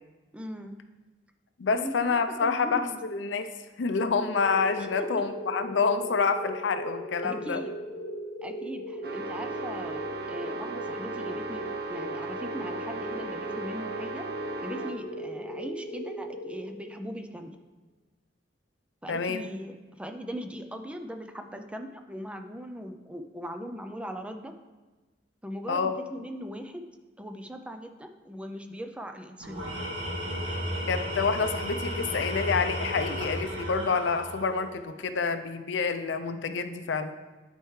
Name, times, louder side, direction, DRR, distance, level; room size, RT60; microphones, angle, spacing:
voice 1, 0.3-0.8 1.7-2.1 2.4-3.0 4.8-5.1 7.2-7.7 8.4-11.6 11.9-14.3 14.6-17.6 19.0-24.5 25.4-26.8 27.2-29.8, equal, 5° right, 6 dB, 0.4 m, -39 dB
voice 2, 1.6-3.5 3.8-7.6 19.1-19.5 25.7-26.0 30.9-37.1, left 5 dB, 80° left, 9 dB, 0.5 m, -28 dB
sound 1, 4.1-17.2, equal, 55° left, 1.0 m, -38 dB
sound 2, 9.0-15.1, right 3 dB, 60° right, 0.6 m, -38 dB
Tools, 29.4-34.8, equal, 80° right, 2.3 m, -33 dB
11.5 x 4.4 x 3.2 m, 1.2 s
head